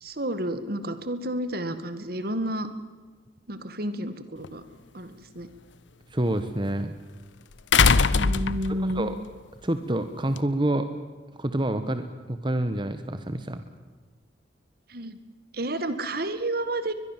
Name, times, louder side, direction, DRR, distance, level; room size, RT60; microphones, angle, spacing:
voice 1, 0.0-2.7 3.5-4.6 4.9-5.5 8.1-9.1 14.9-15.2 15.5-16.9, right 1 dB, 55° right, 11 dB, 1.8 m, -30 dB
sound 1, 4.4-4.5 7.7-9.0 10.4-10.5, left 5 dB, 80° left, 0.9 m, -20 dB
voice 2, 6.1-7.0 8.7-9.1 9.6-10.9 11.4-13.6, right 1 dB, 25° right, 9 dB, 1.2 m, -27 dB
22.5 x 22.0 x 7.4 m, 1.4 s
head